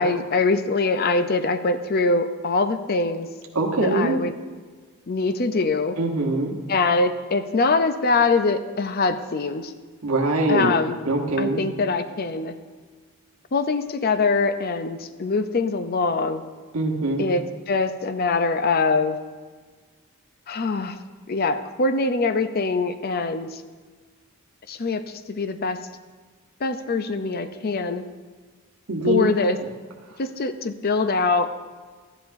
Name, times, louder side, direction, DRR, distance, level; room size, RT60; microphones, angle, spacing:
voice 1, 0.0-3.3 3.8-4.3 5.1-6.0 6.7-9.7 10.5-11.0 11.4-12.6 13.5-16.4 17.2-19.2 20.5-21.0 21.3-23.6 24.7-25.8 26.6-28.1 29.0-29.6 30.2-31.5, left 3 dB, 45° left, 10 dB, 0.5 m, -23 dB
voice 2, 3.5-4.2 6.0-6.5 10.0-10.7 11.0-11.6 16.7-17.2 28.9-29.3, right 2 dB, 80° right, 0 dB, 1.1 m, -22 dB
13.0 x 10.5 x 2.6 m, 1.5 s
head